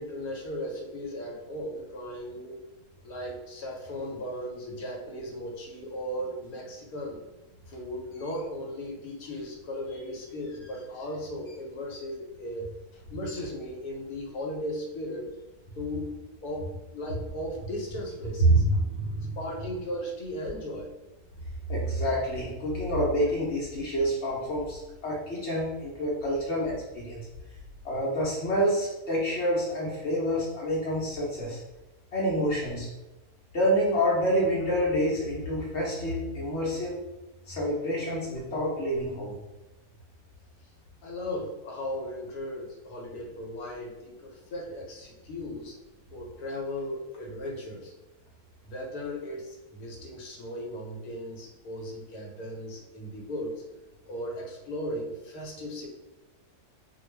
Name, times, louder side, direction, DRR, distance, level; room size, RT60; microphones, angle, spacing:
voice 1, 0.0-2.6 3.0-7.2 7.7-15.3 15.8-18.6 19.4-20.9 41.0-45.7 46.1-47.9 48.6-53.6 54.1-55.9, left 1 dB, 75° left, 0 dB, 1.1 m, -37 dB
voice 2, 18.4-19.3 21.7-27.3 27.8-31.6 32.1-32.9 33.5-37.0 37.5-39.3, equal, 55° left, -5 dB, 0.9 m, -27 dB
2.4 x 2.2 x 3.1 m, 1.0 s
omnidirectional pair, 1.6 m